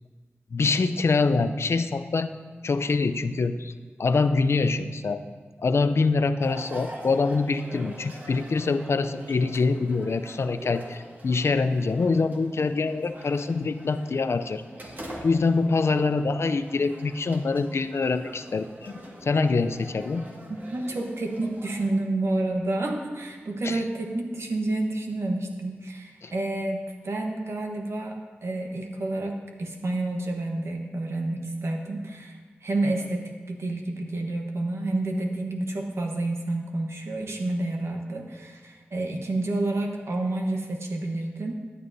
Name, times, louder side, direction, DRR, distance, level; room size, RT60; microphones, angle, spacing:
voice 1, 0.5-2.3 2.6-3.7 4.0-5.2 5.6-14.6 15.2-20.3 23.6-23.8 26.2-26.3, left 4 dB, 70° left, 11 dB, 0.5 m, -25 dB
sound 1, 6.4-21.9, right 1 dB, 45° right, 1.8 m, -44 dB
voice 2, 20.5-41.5, right 2 dB, 70° right, 2 dB, 1.0 m, -29 dB
15.0 x 9.5 x 2.7 m, 1.5 s
cardioid pair, 55°, 5 cm